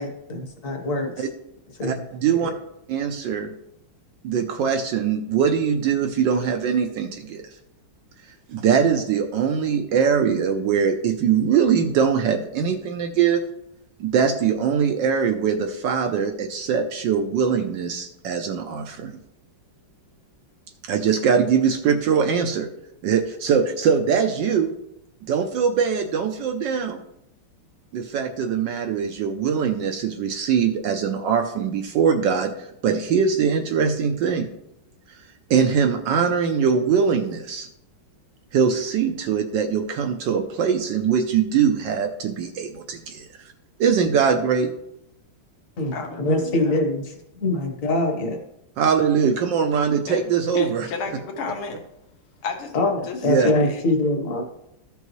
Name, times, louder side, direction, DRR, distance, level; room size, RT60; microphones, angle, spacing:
voice 1, 0.0-1.3 1.8-2.0 2.4-2.5 45.8-45.9 46.2-47.0 47.4-48.4 52.7-54.4, left 2 dB, 45° left, 3 dB, 1.4 m, -23 dB
voice 2, 1.9-2.5 2.9-3.5 4.2-7.4 8.5-13.4 14.0-19.1 20.8-22.7 23.0-24.7 25.3-27.0 27.9-34.5 35.5-37.7 38.5-43.3 43.8-44.7 48.8-50.9 53.2-53.5, right 7 dB, 70° right, 6 dB, 1.2 m, -22 dB
voice 3, 45.9-46.8 50.1-50.2 50.5-51.9 52.4-53.8, left 4 dB, 80° left, 3 dB, 2.1 m, -32 dB
14.0 x 5.4 x 3.1 m, 0.81 s
omnidirectional pair, 2.3 m